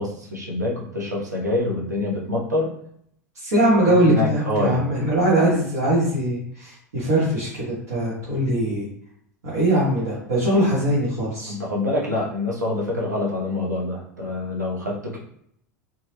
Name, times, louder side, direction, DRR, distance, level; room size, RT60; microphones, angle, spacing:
voice 1, 0.0-2.7 3.9-4.8 11.5-15.2, left 2 dB, 85° right, -4 dB, 0.8 m, -26 dB
voice 2, 3.3-8.9 9.5-11.6, right 1 dB, 65° right, -10 dB, 1.2 m, -21 dB
2.9 x 2.2 x 3.0 m, 0.70 s
figure-of-eight pair, 80°, 9 cm